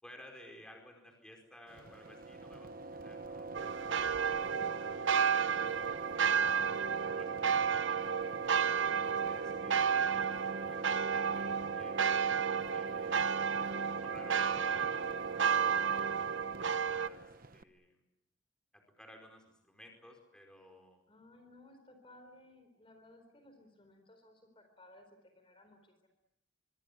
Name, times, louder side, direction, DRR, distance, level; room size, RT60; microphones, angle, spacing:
voice 1, 0.0-4.7 5.0-6.9 7.2-8.0 8.7-12.1 12.7-13.4 13.7-16.1 16.9-18.0 18.7-21.0, left 1 dB, 5° left, 2 dB, 4.8 m, -58 dB
sound 1, 1.7-17.6, right 3 dB, 45° right, 1.0 m, -44 dB
sound 2, 3.5-17.1, right 6 dB, 70° right, 0.9 m, -32 dB
voice 2, 21.1-26.1, left 1 dB, 25° left, 6 dB, 4.4 m, -59 dB
25.5 x 24.5 x 8.3 m, 0.84 s
head